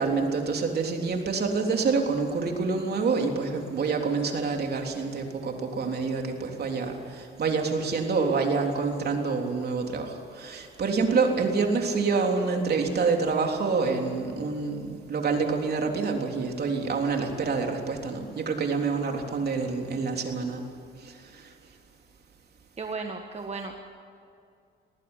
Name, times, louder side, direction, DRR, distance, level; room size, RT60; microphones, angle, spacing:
voice 1, 0.0-20.6 21.0-21.5, right 4 dB, 55° right, 2 dB, 3.5 m, -27 dB
voice 2, 22.8-23.8, right 4 dB, 30° right, 4 dB, 1.6 m, -35 dB
19.0 x 19.0 x 9.8 m, 2.4 s
cardioid pair, 90°, 20 cm